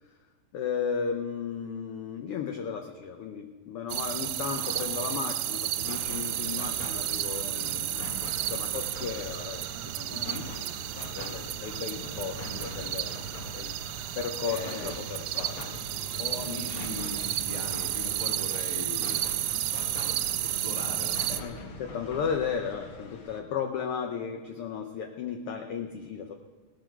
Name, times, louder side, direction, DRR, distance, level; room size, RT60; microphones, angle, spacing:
voice 1, 0.5-8.1 8.5-10.4 11.1-13.8 14.2-15.6 19.3-19.4 21.3-26.4, left 6 dB, 70° left, 5 dB, 1.3 m, -35 dB
sound 1, 3.9-21.4, right 13 dB, 80° right, 1.7 m, -32 dB
voice 2, 4.4-4.9 10.1-10.5 14.4-15.0 16.2-19.3 20.0-21.6, left 3 dB, 15° left, 1 dB, 1.6 m, -40 dB
sound 2, 5.8-23.4, left 2 dB, 50° left, 1.7 m, -43 dB
18.0 x 12.5 x 4.6 m, 1.5 s
omnidirectional pair, 3.5 m